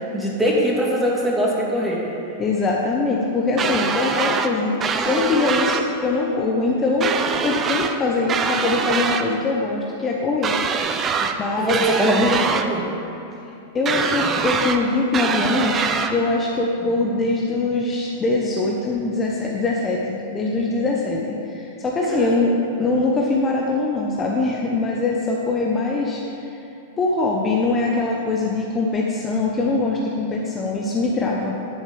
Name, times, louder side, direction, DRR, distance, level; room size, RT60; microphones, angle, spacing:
voice 1, 0.1-2.0 11.2-12.8 22.1-22.4 22.8-22.9, equal, 10° right, -4 dB, 2.5 m, -22 dB
voice 2, 2.4-10.6 11.0-11.1 11.4-11.8 13.7-26.2 27.0-31.6, left 3 dB, 25° left, -2 dB, 1.1 m, -22 dB
sound 1, 3.6-4.5 4.8-5.9 7.0-8.0 8.3-9.3 10.4-11.4 11.7-12.7 13.9-14.8 15.1-16.1, right 5 dB, 25° right, 0.7 m, -23 dB
10.5 x 5.3 x 7.7 m, 2.9 s
hypercardioid pair, 120°, 0 cm